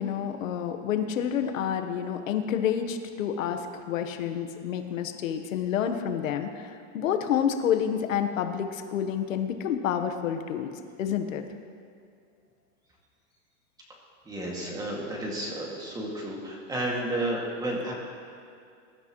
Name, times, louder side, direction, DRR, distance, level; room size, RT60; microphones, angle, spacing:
voice 1, 0.0-10.7 11.0-11.4, left 8 dB, 85° left, 6 dB, 1.3 m, -29 dB
voice 2, 14.3-17.9, right 1 dB, 10° right, -2 dB, 2.2 m, -32 dB
22.5 x 12.5 x 3.1 m, 2.4 s
supercardioid pair, 160°, 39 cm